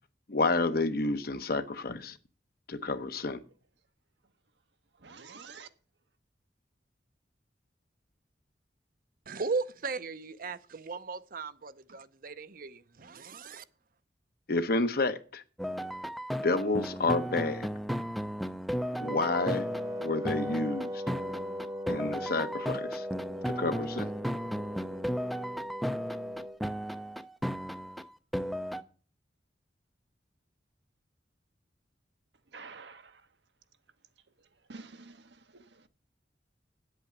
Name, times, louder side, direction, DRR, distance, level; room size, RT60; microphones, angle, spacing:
voice 1, 0.3-2.2 2.7-3.4 14.5-15.4 16.4-17.7 19.0-19.7 20.0-21.0 21.9-23.1 23.5-24.1, left 3 dB, 55° left, 0.9 m, -30 dB
voice 2, 5.0-5.7 32.5-33.2 34.7-35.9, right 4 dB, 75° right, 1.1 m, -49 dB
voice 3, 9.3-13.6, right 4 dB, 50° right, 0.7 m, -37 dB
sound 1, 15.6-28.8, equal, ahead, 0.5 m, -35 dB
Wind instrument woodwind instrument, 19.0-26.6, equal, 20° right, 1.0 m, -39 dB
9.1 x 8.1 x 7.2 m
head